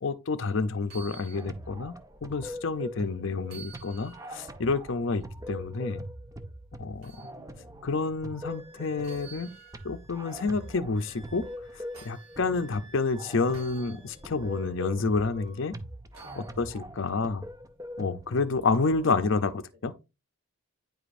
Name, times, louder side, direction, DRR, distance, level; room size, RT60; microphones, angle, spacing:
voice 1, 0.0-6.0 6.8-7.1 7.8-9.5 9.8-11.4 11.7-15.8 16.4-17.4 18.0-19.9, left 4 dB, 60° left, 0.5 m, -29 dB
sound 1, 0.8-1.5 1.9-2.0 3.4-4.4 7.0-7.3 9.0-10.0 11.4-12.4 13.5-13.9 16.1-16.5 18.3-18.4, right 6 dB, 85° right, 3.0 m, -50 dB
sound 2, 1.3-19.3, equal, 15° right, 0.5 m, -43 dB
voice 2, 2.9-3.3 5.0-5.2 7.2-7.9 9.1-9.6 12.4-13.1 16.2-17.1 18.7-19.1, right 1 dB, 65° right, 3.6 m, -53 dB
Wind instrument woodwind instrument, 8.5-14.9 15.2-15.8, right 3 dB, 30° left, 1.3 m, -57 dB
9.2 x 4.9 x 2.5 m
head